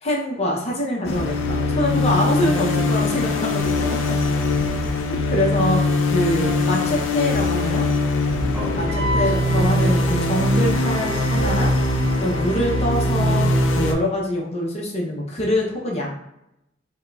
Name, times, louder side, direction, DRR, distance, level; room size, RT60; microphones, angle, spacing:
voice 1, 0.0-3.9 5.1-5.8 6.1-7.9 8.8-11.7 12.2-13.5 13.7-16.1, left 1 dB, 35° left, -2 dB, 0.7 m, -24 dB
sound 1, 1.0-13.9, left 2 dB, 85° left, 0.4 m, -21 dB
voice 2, 3.9-4.9 8.5-9.2, equal, 10° right, -4 dB, 0.6 m, -36 dB
Wind instrument woodwind instrument, 8.9-13.5, left 1 dB, 75° right, 0.3 m, -34 dB
4.2 x 2.2 x 2.3 m, 0.85 s
head